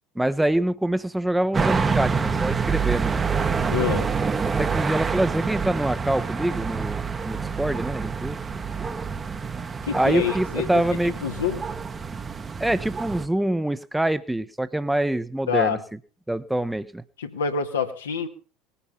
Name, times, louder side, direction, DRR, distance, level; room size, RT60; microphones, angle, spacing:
voice 1, 0.1-3.2 4.6-8.4 9.9-11.1 12.6-15.8 16.3-17.0, right 1 dB, 5° right, 15 dB, 1.0 m, -25 dB
sound 1, 1.5-13.3, right 5 dB, 25° right, 1.2 m, -27 dB
voice 2, 3.7-4.1 9.9-10.7 11.2-11.6 15.5-15.8 17.2-18.3, left 7 dB, 75° left, 4 dB, 1.6 m, -26 dB
20.0 x 10.0 x 5.5 m, 0.39 s
figure-of-eight pair, 70°, 0 cm